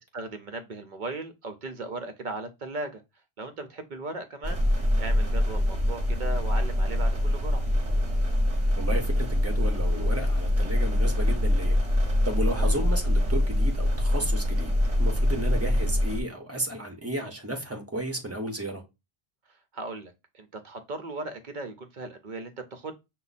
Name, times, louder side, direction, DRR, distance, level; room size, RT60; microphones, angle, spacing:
voice 1, 0.1-3.0 3.4-4.7 5.0-7.6 12.5-12.7 19.5-22.9, right 2 dB, 55° right, 0.7 m, -37 dB
sound 1, 4.4-16.2, left 1 dB, 35° right, 1.0 m, -24 dB
voice 2, 8.8-14.7 15.0-18.8, right 1 dB, 15° right, 0.8 m, -33 dB
5.8 x 2.2 x 4.1 m
omnidirectional pair, 1.1 m